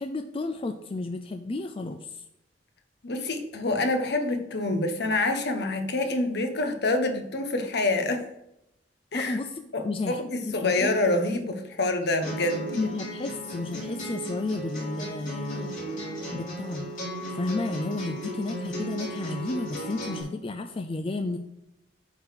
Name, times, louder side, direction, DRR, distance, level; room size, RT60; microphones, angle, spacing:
voice 1, 0.0-2.2 9.1-10.9 12.8-15.7 16.3-16.9 17.3-21.4, left 2 dB, 30° left, 7 dB, 0.4 m, -32 dB
voice 2, 3.0-8.2 9.1-9.4 9.7-12.8, left 2 dB, 65° left, 6 dB, 1.1 m, -27 dB
sound 1, 12.2-20.2, equal, 50° left, 3.5 m, -35 dB
9.1 x 3.8 x 5.7 m, 0.84 s
head